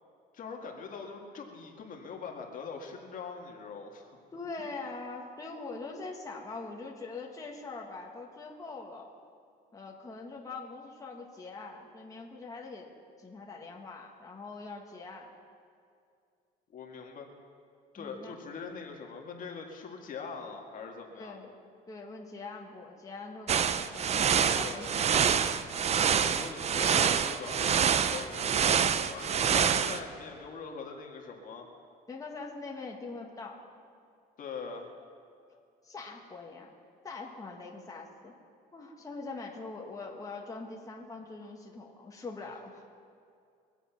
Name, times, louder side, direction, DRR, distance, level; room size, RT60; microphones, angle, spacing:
voice 1, 0.3-4.2 16.7-17.3 17.9-21.4 24.6-24.9 26.2-31.7 34.4-34.9 42.4-42.5, left 5 dB, 50° left, 1 dB, 2.0 m, -42 dB
voice 2, 4.3-9.1 9.7-12.9 13.2-15.3 18.0-18.4 21.2-21.5 21.9-25.5 32.1-33.6 35.8-36.7 37.0-38.3 38.7-42.8, left 3 dB, 20° left, -1 dB, 1.7 m, -43 dB
sound 1, 23.5-30.0, right 7 dB, 40° right, 0.6 m, -26 dB
23.5 x 8.2 x 5.9 m, 2.4 s
cardioid pair, 110°, 17 cm